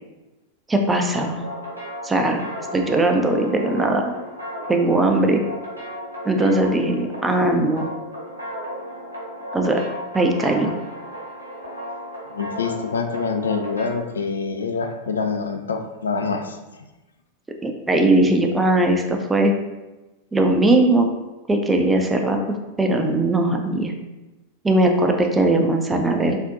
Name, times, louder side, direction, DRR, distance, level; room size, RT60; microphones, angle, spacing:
voice 1, 0.7-1.4 2.0-2.4 2.7-4.2 4.7-5.4 6.2-7.9 9.5-9.8 10.1-10.7 17.6-19.5 20.3-21.1 21.5-23.9 24.6-26.4, right 2 dB, 10° right, 3 dB, 0.4 m, -19 dB
sound 1, 1.0-13.9, equal, 85° right, 0.7 m, -35 dB
voice 2, 12.3-16.8, left 4 dB, 70° left, 5 dB, 0.3 m, -26 dB
3.5 x 2.5 x 2.5 m, 1.1 s
figure-of-eight pair, 90°, 0 cm